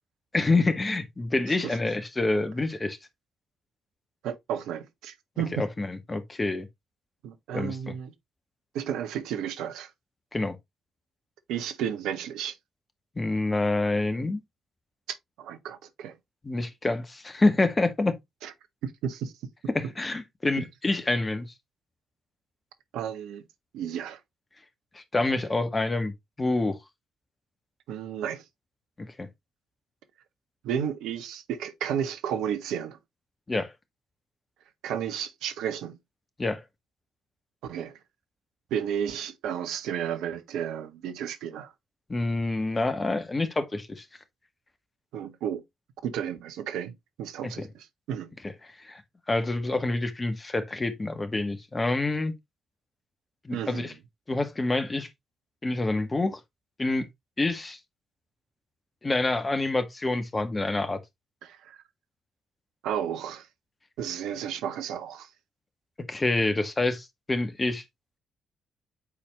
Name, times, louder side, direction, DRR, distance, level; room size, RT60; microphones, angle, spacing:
voice 1, 0.3-3.0 5.6-6.7 7.5-7.9 10.3-10.6 13.1-14.4 16.4-18.1 19.7-21.5 24.9-26.1 26.4-26.8 29.0-29.3 33.5-33.7 36.4-36.6 42.1-44.0 47.6-47.7 48.8-49.0 49.3-52.3 53.4-53.9 54.3-55.1 55.6-56.4 56.8-57.1 57.4-57.8 59.0-61.0 66.1-67.8, left 2 dB, 25° left, 1.5 m, -27 dB
voice 2, 1.5-1.8 4.2-5.6 7.2-8.1 8.7-9.9 11.5-12.6 15.1-16.2 18.4-18.5 18.8-19.3 22.9-23.4 23.7-24.2 27.9-28.4 30.6-33.0 34.8-36.0 37.6-38.0 38.7-41.7 45.1-45.6 46.0-48.3 53.5-53.9 61.4-61.8 62.8-63.5 64.0-65.3, right 9 dB, 70° right, 0.8 m, -33 dB
8.5 x 4.2 x 2.9 m
hypercardioid pair, 40°, 0 cm